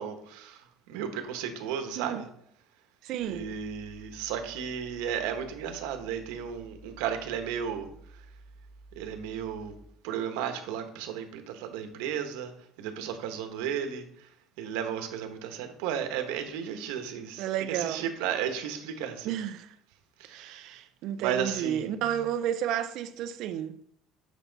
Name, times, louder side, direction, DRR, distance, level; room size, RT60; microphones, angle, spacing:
voice 1, 0.0-2.3 3.3-7.9 9.0-9.7 10.0-12.5 12.8-14.0 14.6-19.4 20.2-20.8 21.2-21.9, right 8 dB, 90° right, 1.2 m, -34 dB
voice 2, 3.0-3.6 17.4-18.1 19.2-19.7 20.3-23.8, right 10 dB, 55° right, 0.6 m, -32 dB
sound 1, 3.2-10.0, right 2 dB, 25° left, 2.2 m, -52 dB
8.4 x 5.7 x 4.0 m
cardioid pair, 150°, 0 cm